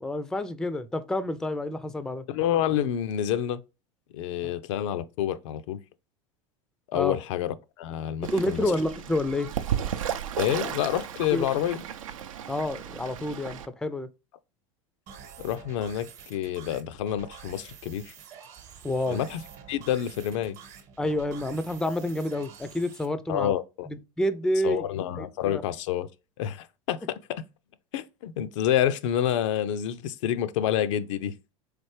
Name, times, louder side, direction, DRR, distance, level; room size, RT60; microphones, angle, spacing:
voice 1, 0.0-2.2 4.4-4.5 6.9-7.2 8.2-9.5 11.3-11.4 12.5-14.1 18.8-19.2 21.0-23.5 23.9-24.9 25.2-25.7, left 1 dB, 5° left, 0.4 m, -29 dB
voice 2, 2.3-3.6 4.1-5.8 6.9-8.6 10.4-11.8 15.4-18.1 19.1-19.4 19.7-20.6 23.3-23.9 24.6-26.1 26.4-27.4 27.9-31.3, left 11 dB, 65° left, 0.4 m, -28 dB
Fowl / Bird, 8.2-13.7, right 9 dB, 80° right, 0.5 m, -34 dB
sound 1, 15.1-23.1, right 7 dB, 50° right, 0.9 m, -48 dB
3.8 x 3.3 x 3.1 m
hypercardioid pair, 85°, 17 cm